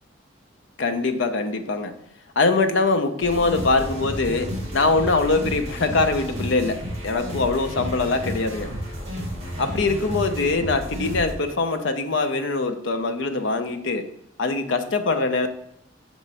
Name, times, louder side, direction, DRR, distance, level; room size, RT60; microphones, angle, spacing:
voice 1, 0.8-1.9 2.4-8.7 9.6-14.1 14.4-15.5, left 3 dB, 75° left, 8 dB, 0.6 m, -23 dB
sound 1, 3.2-11.3, equal, 35° right, 1.7 m, -32 dB
6.2 x 3.0 x 5.4 m, 0.74 s
head